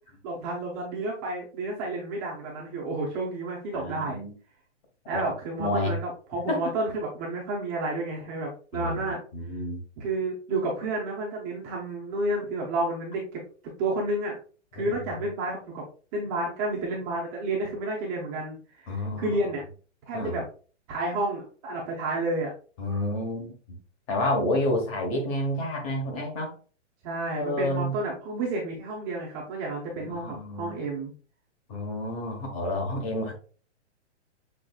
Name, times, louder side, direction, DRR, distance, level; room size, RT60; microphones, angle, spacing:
voice 1, 0.2-4.2 5.1-9.2 10.0-13.4 13.8-14.4 14.7-15.8 16.1-19.6 20.1-20.4 20.9-22.5 27.0-31.1, right 2 dB, 20° right, -3 dB, 0.7 m, -31 dB
voice 2, 3.7-4.3 5.1-5.2 5.6-5.9 6.5-6.7 8.7-9.8 14.8-15.0 18.9-19.3 20.1-20.4 22.8-23.8 24.1-26.5 27.3-27.9 30.0-30.8 31.7-33.3, left 1 dB, 30° left, 2 dB, 1.1 m, -29 dB
6.4 x 3.3 x 2.3 m, 0.39 s
hypercardioid pair, 165°, 35 cm